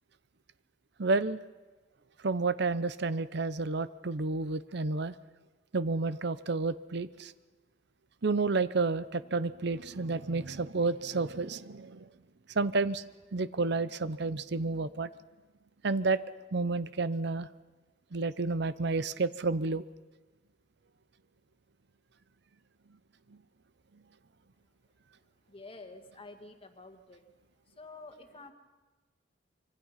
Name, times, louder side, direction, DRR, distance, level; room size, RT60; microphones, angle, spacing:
voice 1, 1.0-1.4 2.2-5.1 5.7-7.3 8.2-12.0 12.6-13.0 13.3-15.1 15.8-16.2 16.5-17.5 18.1-19.8, right 3 dB, 60° right, 15 dB, 0.7 m, -30 dB
voice 2, 25.5-27.2 27.7-28.5, left 3 dB, 30° left, 6 dB, 1.8 m, -49 dB
25.0 x 24.5 x 5.7 m, 1.2 s
head